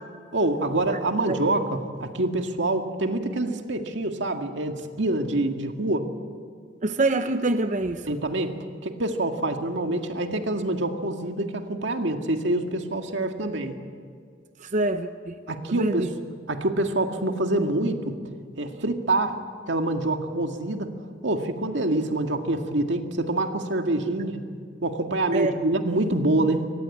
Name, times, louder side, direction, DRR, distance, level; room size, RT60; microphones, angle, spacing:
voice 1, 0.3-6.1 8.1-13.8 15.5-16.1 16.5-18.2 18.6-19.4 19.7-20.9 21.2-24.4 24.8-26.7, right 2 dB, 90° right, 5 dB, 2.0 m, -26 dB
voice 2, 6.8-8.0 14.6-15.3 15.7-16.1 25.3-25.5, right 2 dB, 45° right, 8 dB, 0.8 m, -25 dB
24.0 x 18.5 x 8.5 m, 2.1 s
head